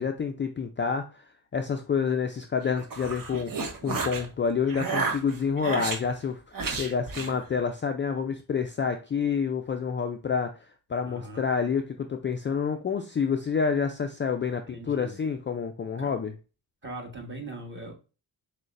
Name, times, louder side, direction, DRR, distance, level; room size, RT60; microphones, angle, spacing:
voice 1, 0.0-16.3, left 6 dB, 30° left, 5 dB, 0.4 m, -28 dB
sound 1, 2.6-4.3 4.7-6.0 6.5-7.4, right 4 dB, 50° right, 1.1 m, -31 dB
voice 2, 11.0-11.4 14.7-15.2 16.0-16.1 16.8-18.0, right 2 dB, 25° right, 1 dB, 1.5 m, -40 dB
6.2 x 2.2 x 2.5 m, 0.33 s
cardioid pair, 60°, 42 cm